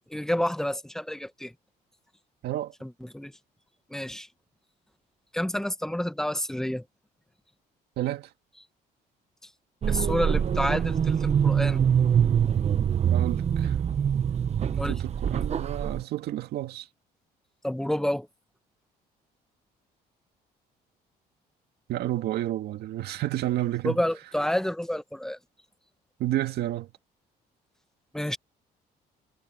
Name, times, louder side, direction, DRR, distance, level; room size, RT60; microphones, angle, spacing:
voice 1, 0.1-1.5 2.8-3.3 3.9-4.3 5.3-6.8 9.9-11.8 14.8-15.0 17.6-18.3 23.8-25.4 28.1-28.4, left 1 dB, 5° left, 1.6 m, -29 dB
voice 2, 2.4-2.7 8.0-8.3 13.1-13.8 14.9-16.9 21.9-24.0 26.2-26.9, right 14 dB, 75° right, 1.9 m, -30 dB
sound 1, 9.8-16.0, right 8 dB, 40° right, 1.1 m, -24 dB
cardioid pair, 110°, 17 cm